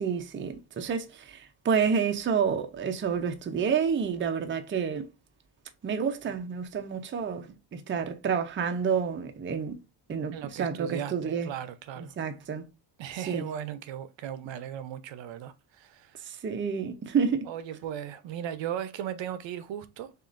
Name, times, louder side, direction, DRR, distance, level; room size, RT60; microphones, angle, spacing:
voice 1, 0.0-5.1 5.8-9.8 10.1-11.5 12.2-12.6 13.2-13.5 16.2-17.5, right 6 dB, 25° right, 0.5 m, -29 dB
voice 2, 10.3-12.1 13.0-16.3 17.5-20.1, right 10 dB, 65° right, 0.6 m, -37 dB
6.4 x 2.5 x 2.5 m
cardioid pair, 110°, 49 cm